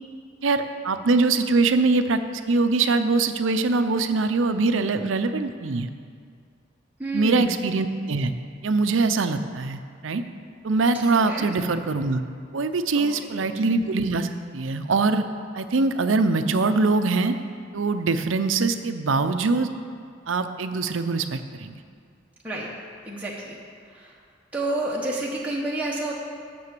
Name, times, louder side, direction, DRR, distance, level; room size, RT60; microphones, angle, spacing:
voice 1, 0.4-5.9 7.1-8.3 8.6-10.2 10.6-12.2 12.5-15.2 15.5-17.3 17.7-19.7 20.3-21.8, right 3 dB, 80° right, 9 dB, 0.6 m, -23 dB
voice 2, 7.0-7.5 11.2-11.5 12.9-13.1 13.4-13.5 22.4-22.7 23.0-23.6 23.9-24.1 24.5-26.1, right 1 dB, 10° right, -5 dB, 1.0 m, -29 dB
9.7 x 7.0 x 6.7 m, 2.2 s
head